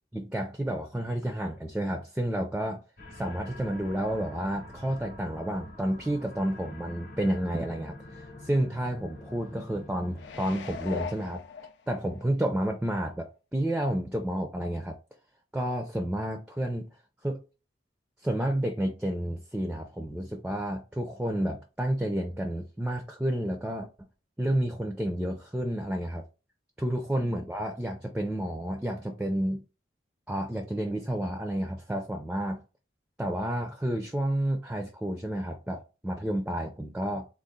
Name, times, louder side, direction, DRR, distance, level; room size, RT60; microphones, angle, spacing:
voice 1, 0.1-2.8 3.1-11.4 11.9-15.0 15.5-16.9 17.2-17.4 18.2-23.9 24.4-26.2 26.8-29.6 30.3-32.6 33.2-37.3, right 1 dB, 5° right, 0.3 m, -30 dB
sound 1, 3.0-10.5, left 1 dB, 45° left, 0.8 m, -46 dB
sound 2, 10.2-12.2 12.7-12.8, left 5 dB, 75° left, 0.4 m, -39 dB
3.8 x 2.4 x 3.6 m
head